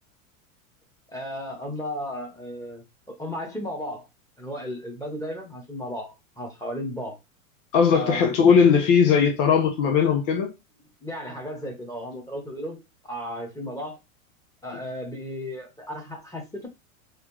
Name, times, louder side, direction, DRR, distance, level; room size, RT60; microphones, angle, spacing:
voice 1, 1.1-4.1 4.4-7.2 7.9-8.3 11.0-14.0 14.6-16.7, equal, 10° left, 1.1 m, -35 dB
voice 2, 7.7-10.5, left 6 dB, 60° left, 0.9 m, -19 dB
3.4 x 2.4 x 3.0 m
hypercardioid pair, 105°, 42 cm